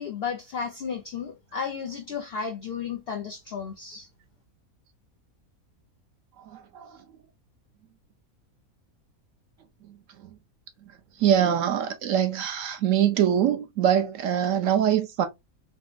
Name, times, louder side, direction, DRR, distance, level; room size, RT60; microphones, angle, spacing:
voice 1, 0.0-4.1, left 6 dB, 75° left, 0.5 m, -33 dB
voice 2, 6.4-7.0 11.2-15.3, right 9 dB, 70° right, 0.9 m, -23 dB
3.8 x 2.0 x 2.4 m
omnidirectional pair, 1.5 m